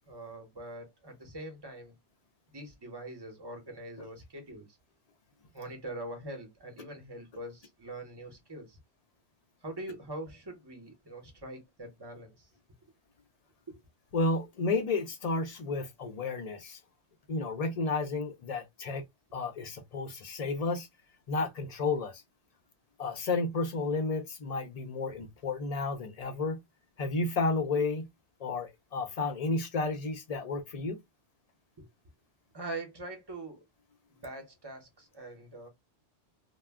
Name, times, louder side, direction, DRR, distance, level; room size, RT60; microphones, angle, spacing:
voice 1, 0.1-1.9 2.5-4.7 5.5-8.8 9.6-12.5 13.7-13.8 31.8-31.9 32.5-33.6 34.1-35.7, right 1 dB, 25° right, 0.8 m, -43 dB
voice 2, 14.1-16.8 17.3-19.0 19.3-20.9 21.3-22.2 23.0-26.6 27.0-28.1 28.4-31.0, left 3 dB, 45° left, 0.5 m, -32 dB
2.3 x 2.1 x 3.4 m
omnidirectional pair, 1.2 m